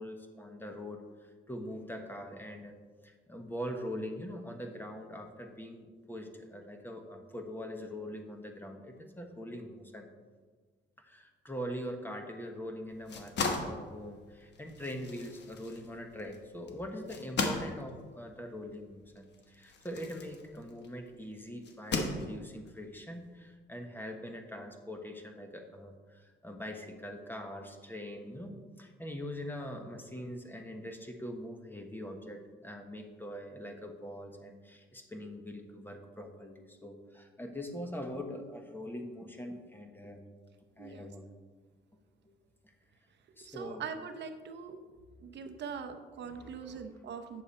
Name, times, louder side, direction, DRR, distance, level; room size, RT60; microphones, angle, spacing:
voice 1, 0.0-10.1 11.0-40.2 40.8-41.3 43.4-43.8 46.3-46.8, equal, 10° left, 4 dB, 1.1 m, -43 dB
sound 1, 12.9-21.0 21.6-22.7, left 3 dB, 60° left, 1.2 m, -37 dB
voice 2, 43.4-44.8 45.2-47.4, right 6 dB, 60° right, 7 dB, 0.7 m, -42 dB
8.6 x 6.6 x 4.3 m, 1.4 s
cardioid pair, 90°, 20 cm